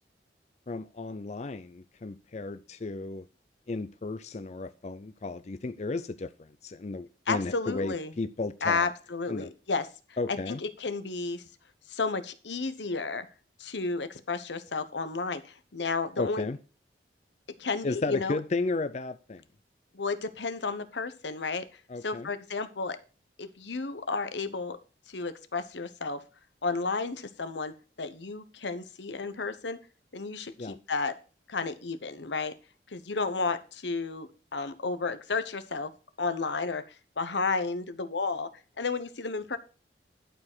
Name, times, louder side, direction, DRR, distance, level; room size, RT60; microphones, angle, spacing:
voice 1, 0.7-3.3 3.7-8.9 9.3-9.5 10.2-10.6 16.2-16.6 17.8-19.4 21.9-22.3 30.6-30.8, left 3 dB, 40° left, 0.5 m, -34 dB
voice 2, 7.3-8.1 8.6-9.9 10.5-11.4 11.9-13.3 13.6-16.5 17.6-18.4 19.9-21.6 22.0-23.0 23.4-24.8 25.1-26.2 26.6-29.8 30.1-31.1 31.5-32.5 32.9-35.9 36.2-36.8 37.2-38.5 38.8-39.6, left 4 dB, 85° left, 1.0 m, -32 dB
11.5 x 4.8 x 6.1 m
head